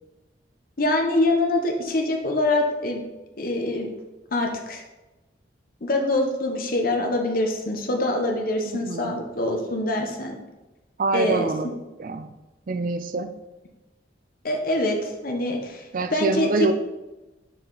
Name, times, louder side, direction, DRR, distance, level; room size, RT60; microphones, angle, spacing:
voice 1, 0.8-3.1 3.4-3.9 4.3-4.8 5.8-10.4 11.1-11.5 14.4-15.8 16.1-16.5, left 2 dB, 50° left, 2 dB, 1.0 m, -24 dB
voice 2, 8.6-9.2 11.0-12.3 12.7-13.3 15.9-16.7, right 3 dB, 50° right, 9 dB, 0.4 m, -26 dB
6.6 x 4.7 x 3.9 m, 1.1 s
head